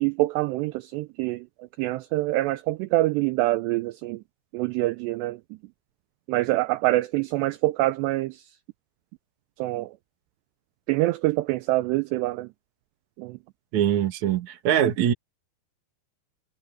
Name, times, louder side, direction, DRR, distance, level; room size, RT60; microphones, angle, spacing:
voice 1, 0.0-1.4 1.8-4.2 4.5-5.4 6.3-8.4 9.6-9.9 10.9-12.5 13.2-13.4, right 18 dB, 80° right, 2.5 m, -25 dB
voice 2, 13.7-15.1, right 10 dB, 50° right, 2.5 m, -22 dB
omnidirectional pair, 5.4 m